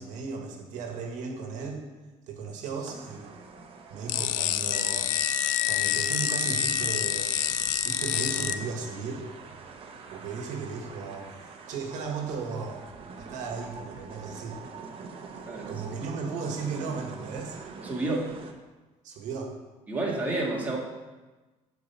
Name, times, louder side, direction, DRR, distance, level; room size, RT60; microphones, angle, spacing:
voice 1, 0.0-1.8 2.3-3.2 3.9-5.1 5.7-9.3 10.1-12.9 13.2-14.6 15.7-17.6 19.0-19.5, right 5 dB, 70° right, 2 dB, 1.5 m, -36 dB
sound 1, 2.8-18.5, right 5 dB, 45° right, 1.0 m, -45 dB
sound 2, 4.1-8.5, left 14 dB, 85° left, 0.4 m, -28 dB
Wind instrument woodwind instrument, 4.7-8.6, left 5 dB, 65° left, 0.8 m, -33 dB
voice 2, 15.3-15.7 17.8-18.3 19.9-20.8, right 2 dB, 10° right, -4 dB, 1.9 m, -30 dB
9.2 x 4.7 x 6.9 m, 1.2 s
cardioid pair, 135°, 13 cm